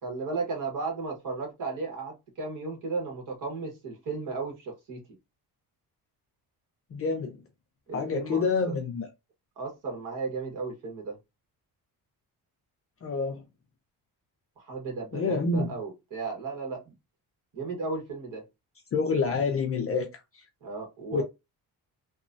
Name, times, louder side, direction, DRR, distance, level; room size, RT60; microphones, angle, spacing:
voice 1, 0.0-5.0 7.9-8.7 9.6-11.2 14.6-16.9 17.5-18.5 20.6-21.2, right 4 dB, 55° right, 1.4 m, -35 dB
voice 2, 6.9-7.4 7.9-9.1 13.0-13.4 15.1-15.7 18.9-20.4 21.1-21.2, left 4 dB, 35° left, 0.5 m, -28 dB
3.0 x 2.2 x 2.5 m
cardioid pair, 150°, 39 cm